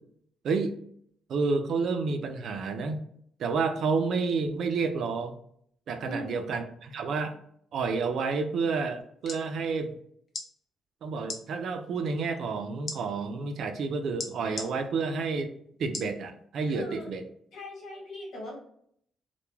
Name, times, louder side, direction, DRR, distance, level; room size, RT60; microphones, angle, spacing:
voice 1, 0.4-0.7 1.3-3.0 3.4-5.3 5.9-7.4 7.7-9.9 11.0-15.5 15.8-17.2, right 4 dB, 65° right, 7 dB, 0.4 m, -30 dB
voice 2, 6.0-6.5 16.7-17.1 17.5-18.6, left 1 dB, 75° left, -2 dB, 1.2 m, -39 dB
sound 1, 9.0-9.4 10.3-10.5 11.2-11.4 12.9-13.0 14.2-14.7 15.9-16.1 16.7-16.8, left 3 dB, 55° left, 0.5 m, -36 dB
2.2 x 2.1 x 3.0 m, 0.66 s
cardioid pair, 90°, 0 cm